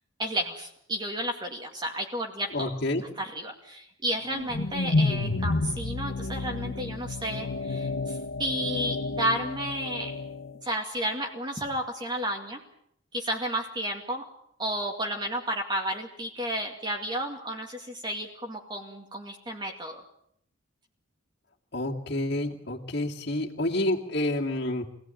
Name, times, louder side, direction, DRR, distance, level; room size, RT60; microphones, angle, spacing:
voice 1, 0.2-2.8 3.2-10.1 10.6-12.6 13.1-14.2 14.6-20.0, right 1 dB, 25° right, 1 dB, 2.3 m, -32 dB
voice 2, 2.5-3.1 21.7-24.9, left 1 dB, 55° left, -1 dB, 2.6 m, -29 dB
sound 1, 4.2-10.6, left 3 dB, 90° left, 1.2 m, -30 dB
25.5 x 17.5 x 9.3 m, 0.72 s
head